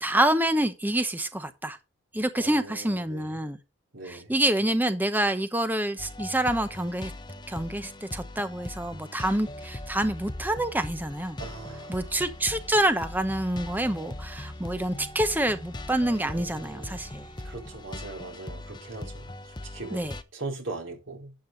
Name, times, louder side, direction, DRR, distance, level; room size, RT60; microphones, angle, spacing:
voice 1, 0.0-1.8 2.1-3.6 4.1-7.1 7.5-11.4 11.9-17.3 19.9-20.1, right 1 dB, 10° right, 0.9 m, -27 dB
voice 2, 2.3-3.4 3.9-4.3 11.4-12.3 16.1-20.1 20.3-21.3, right 3 dB, 70° right, 4.2 m, -40 dB
sound 1, 6.0-20.2, left 1 dB, 20° left, 0.8 m, -40 dB
12.0 x 7.6 x 3.9 m
head